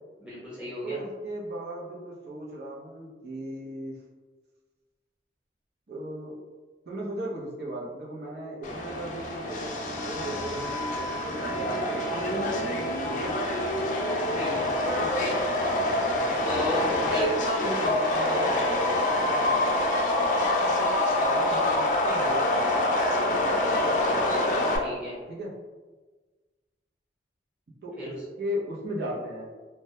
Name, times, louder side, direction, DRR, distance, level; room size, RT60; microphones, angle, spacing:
voice 1, 0.2-1.0 14.3-14.7 16.4-16.8 17.1-17.3 19.2-19.5 24.8-25.2 28.0-28.2, left 1 dB, 5° right, -9 dB, 0.8 m, -35 dB
voice 2, 0.8-4.0 5.9-6.3 6.9-12.5 13.1-13.4 14.8-15.1 16.2-16.4 17.0-17.1 17.6-18.5 20.7-20.9 21.2-22.9 25.3-25.5 27.8-28.1 28.4-29.5, right 1 dB, 60° right, -4 dB, 0.6 m, -36 dB
Subway metro underground, 8.6-24.8, left 1 dB, 45° left, 0.3 m, -26 dB
sound 1, 10.4-18.6, left 1 dB, 90° right, 1.0 m, -37 dB
2.1 x 2.1 x 2.8 m, 1.3 s
head